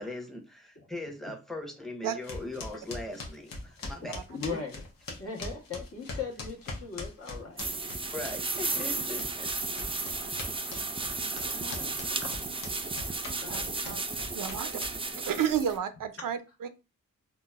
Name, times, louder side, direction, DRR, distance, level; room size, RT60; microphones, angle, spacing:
voice 1, 0.0-4.2 4.5-4.6 8.1-9.5, left 2 dB, ahead, 0.8 m, -40 dB
sound 1, 2.2-8.6 8.9-15.2, left 2 dB, 90° left, 0.7 m, -41 dB
voice 2, 4.0-4.8 5.2-7.6 8.7-9.1 10.0-10.4 11.4-12.5 12.9-13.0 13.4-14.0 14.6-14.9, left 4 dB, 45° left, 1.0 m, -40 dB
sound 2, 7.6-15.8, right 3 dB, 15° right, 0.4 m, -34 dB
voice 3, 13.5-14.0 14.3-14.7 15.3-16.7, right 8 dB, 75° right, 0.5 m, -31 dB
3.9 x 2.1 x 2.3 m
cardioid pair, 65°, 33 cm